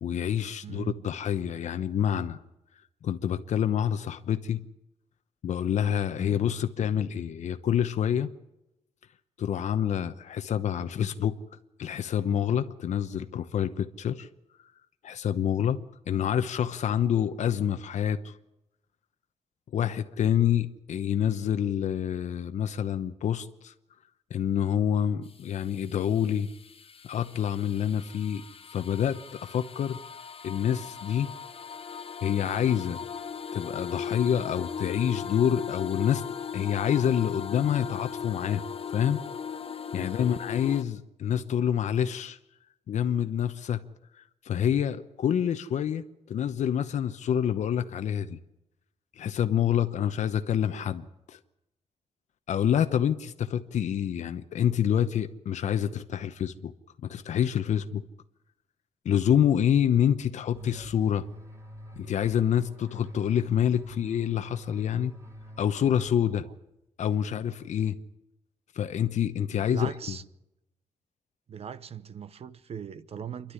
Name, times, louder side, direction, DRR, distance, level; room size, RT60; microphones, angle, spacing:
voice 1, 0.0-2.4 3.0-4.6 5.4-8.3 9.4-11.4 11.8-14.3 15.0-15.8 16.1-18.3 19.7-23.7 24.3-26.5 27.0-28.4 28.7-30.0 30.4-31.3 32.2-33.0 33.5-36.2 36.5-39.2 39.9-42.4 42.9-43.8 44.4-48.4 49.2-51.4 52.5-56.7 57.0-58.1 59.0-61.3 62.0-65.1 65.6-66.5 67.0-68.0 68.7-70.1, left 9 dB, 80° left, 1.0 m, -27 dB
voice 2, 0.6-1.0 6.3-6.6 40.0-40.3 66.4-66.5 69.5-70.2 71.5-73.5, right 8 dB, 60° right, 0.9 m, -40 dB
sound 1, 25.2-40.8, left 7 dB, 50° left, 1.4 m, -38 dB
sound 2, 60.5-66.7, equal, 25° right, 3.9 m, -45 dB
28.0 x 12.0 x 9.8 m
wide cardioid pair, 130°, 12 cm